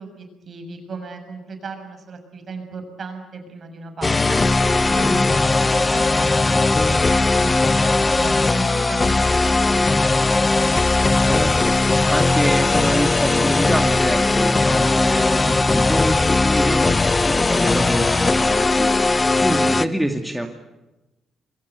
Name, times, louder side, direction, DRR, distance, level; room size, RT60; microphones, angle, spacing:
voice 1, 0.0-10.7, right 4 dB, 50° right, 6 dB, 6.8 m, -36 dB
sound 1, 4.0-19.9, left 3 dB, 25° left, 0.9 m, -18 dB
voice 2, 4.9-5.2 11.2-20.5, right 1 dB, ahead, 4 dB, 2.2 m, -26 dB
sound 2, 12.8-19.5, left 4 dB, 60° left, 6.7 m, -40 dB
27.5 x 22.5 x 8.4 m, 1.0 s
cardioid pair, 90°, 0 cm